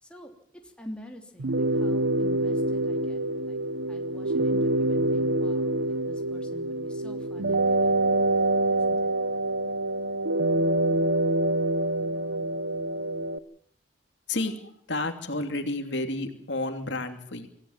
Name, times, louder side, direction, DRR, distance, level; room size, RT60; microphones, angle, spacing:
voice 1, 0.0-0.3 0.6-3.6 3.9-8.0 8.7-9.1 12.8-12.9, equal, 5° left, 2 dB, 3.2 m, -47 dB
sound 1, 1.4-13.4, right 1 dB, 90° right, 1.0 m, -26 dB
voice 2, 14.3-17.5, left 2 dB, 70° left, 6 dB, 2.9 m, -31 dB
25.5 x 15.5 x 7.4 m, 0.65 s
head